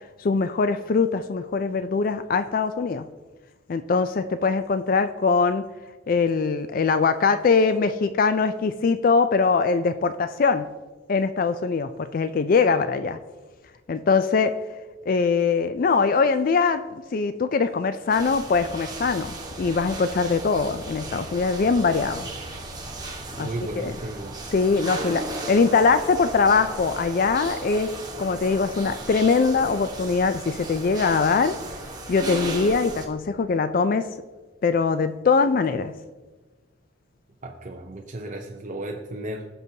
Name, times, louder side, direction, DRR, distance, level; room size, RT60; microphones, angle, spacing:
voice 1, 0.2-3.0 3.7-5.6 6.1-10.7 11.1-13.2 13.9-14.5 15.1-22.3 23.4-23.5 23.8-23.9 24.5-27.9 28.2-31.5 32.1-34.1 34.6-35.9, left 4 dB, 45° left, 11 dB, 0.3 m, -22 dB
sound 1, 18.1-33.1, right 2 dB, 20° right, 1.1 m, -36 dB
voice 2, 23.4-24.4 37.4-39.5, right 1 dB, 35° right, 1 dB, 0.6 m, -34 dB
17.0 x 6.0 x 2.8 m, 1.3 s
head